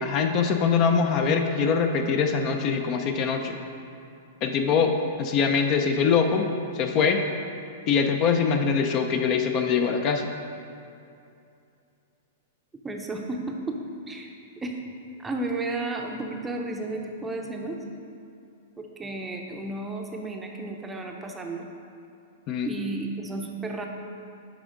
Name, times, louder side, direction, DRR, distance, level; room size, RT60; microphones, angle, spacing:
voice 1, 0.0-3.6 4.4-6.5 6.7-7.2 7.9-10.3 22.5-22.7, left 6 dB, 40° left, 5 dB, 0.5 m, -23 dB
voice 2, 12.8-13.8 14.1-14.8 15.2-17.8 18.8-21.7 22.6-23.8, right 2 dB, 10° right, 1 dB, 0.6 m, -33 dB
9.8 x 3.5 x 3.8 m, 2.6 s
hypercardioid pair, 125°, 0 cm